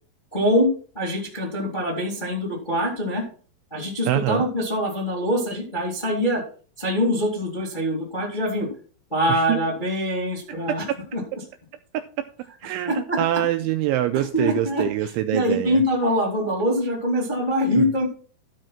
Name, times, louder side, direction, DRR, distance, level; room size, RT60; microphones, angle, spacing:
voice 1, 0.3-0.7 0.9-3.2 3.7-6.4 6.8-8.7 9.1-10.8 11.1-11.2 12.9-13.2 14.3-18.1, equal, 15° left, -2 dB, 1.9 m, -24 dB
voice 2, 4.1-4.5 9.3-9.6 10.7-10.8 11.9-12.0 12.6-15.8 17.7-17.9, right 13 dB, 80° right, 8 dB, 2.8 m, -24 dB
13.0 x 5.2 x 5.9 m, 0.41 s
omnidirectional pair, 5.8 m